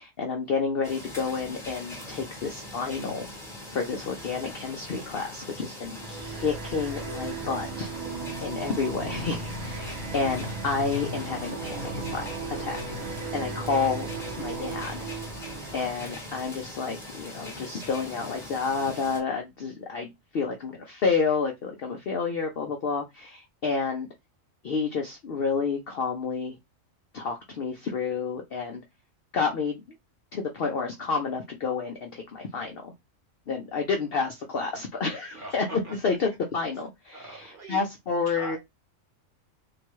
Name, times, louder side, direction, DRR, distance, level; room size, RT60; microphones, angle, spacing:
voice 1, 0.0-3.3 3.7-7.9 8.4-12.2 12.6-12.8 13.1-14.1 14.4-15.1 15.7-24.1 24.6-26.6 27.1-28.8 29.3-29.8 30.3-32.9 33.5-35.7 36.0-38.6, left 5 dB, 60° left, 0.7 m, -30 dB
sound 1, 0.8-19.2, left 1 dB, ahead, 1.0 m, -42 dB
sound 2, 6.0-16.5, right 3 dB, 75° right, 1.4 m, -36 dB
voice 2, 35.3-36.2 37.1-37.8 38.3-38.6, right 2 dB, 45° right, 1.0 m, -41 dB
3.5 x 2.2 x 3.0 m
omnidirectional pair, 1.4 m